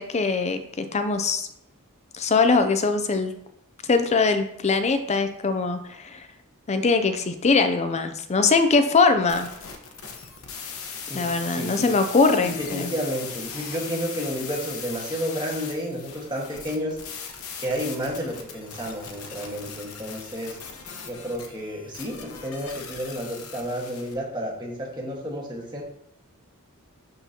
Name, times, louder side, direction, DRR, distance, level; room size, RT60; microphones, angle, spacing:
voice 1, 0.0-1.5 2.1-3.3 3.8-6.3 6.7-9.5 11.1-12.9, left 4 dB, 30° left, 9 dB, 0.5 m, -22 dB
sound 1, 9.3-24.1, left 6 dB, 70° left, 1.0 m, -39 dB
voice 2, 11.5-11.9 12.4-17.0 17.6-20.6 21.1-25.8, equal, 20° right, -3 dB, 1.6 m, -31 dB
11.5 x 3.9 x 2.9 m, 0.76 s
head